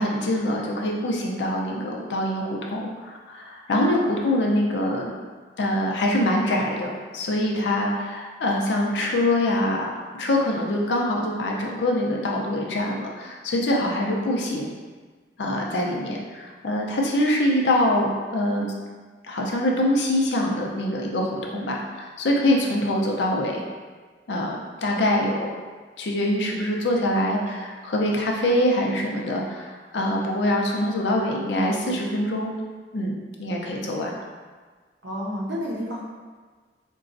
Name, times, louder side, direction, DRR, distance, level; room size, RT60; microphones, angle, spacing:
voice 1, 0.0-5.1 5.6-9.9 10.2-14.7 15.4-18.7 19.2-23.6 24.3-25.5 26.0-32.5 32.9-34.1, left 1 dB, 85° left, -1 dB, 0.5 m, -24 dB
voice 2, 35.0-36.0, equal, 85° right, -2 dB, 0.6 m, -30 dB
3.9 x 2.2 x 2.5 m, 1.5 s
head